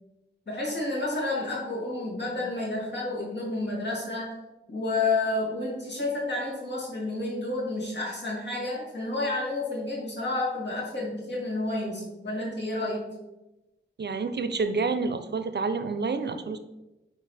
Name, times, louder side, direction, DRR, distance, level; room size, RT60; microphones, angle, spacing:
voice 1, 0.5-4.3 4.7-13.0, left 2 dB, 60° left, -4 dB, 2.5 m, -30 dB
voice 2, 14.0-16.6, right 4 dB, 60° right, 9 dB, 0.5 m, -28 dB
9.4 x 4.5 x 3.3 m, 1.0 s
wide cardioid pair, 65°, 20 cm